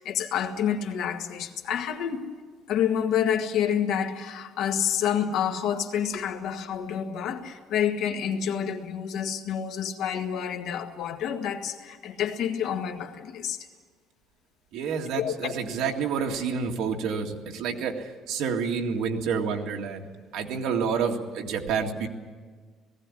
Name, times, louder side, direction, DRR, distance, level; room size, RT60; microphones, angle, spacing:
voice 1, 0.0-2.3 2.7-13.7 15.1-15.5, left 8 dB, 65° left, 5 dB, 1.7 m, -28 dB
voice 2, 14.7-22.1, right 6 dB, 65° right, 2 dB, 2.1 m, -29 dB
18.5 x 16.0 x 9.8 m, 1.5 s
cardioid pair, 165°, 0 cm